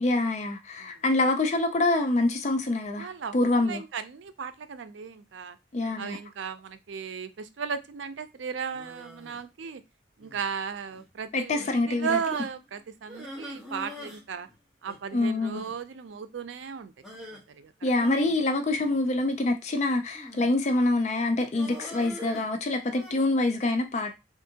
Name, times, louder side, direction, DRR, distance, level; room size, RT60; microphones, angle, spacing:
voice 1, 0.0-3.8 5.7-6.2 11.3-12.2 15.1-15.6 17.8-24.1, left 2 dB, 40° left, 0.4 m, -26 dB
voice 2, 3.0-3.4 3.6-5.6 6.0-9.8 10.2-14.5 14.8-16.9 17.6-17.9, right 6 dB, 90° right, 0.4 m, -35 dB
sound 1, 8.7-9.4 10.2-10.5 10.9-11.1 11.6-11.7 12.3-12.6 13.1-14.2 14.5-14.6 14.9-15.0 15.5-15.7 17.0-17.4 18.0-19.3 20.1-20.6 21.5-23.1, equal, ahead, 1.0 m, -43 dB
3.5 x 2.5 x 2.7 m
head